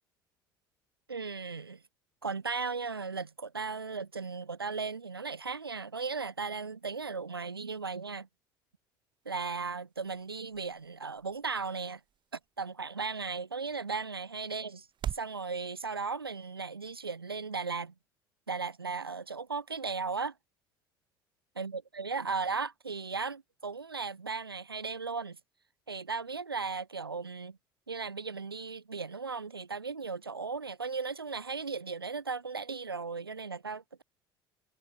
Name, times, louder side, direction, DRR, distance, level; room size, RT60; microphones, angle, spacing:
voice 1, 1.1-1.8 2.2-8.3 9.3-12.0 12.6-14.9 15.1-17.9 18.5-20.3 21.6-25.4 25.9-27.6 27.9-34.0, right 4 dB, 90° right, 0.6 m, -36 dB
sound 1, 9.1-15.4, right 10 dB, 40° right, 2.2 m, -46 dB
figure-of-eight pair, 60°, 12 cm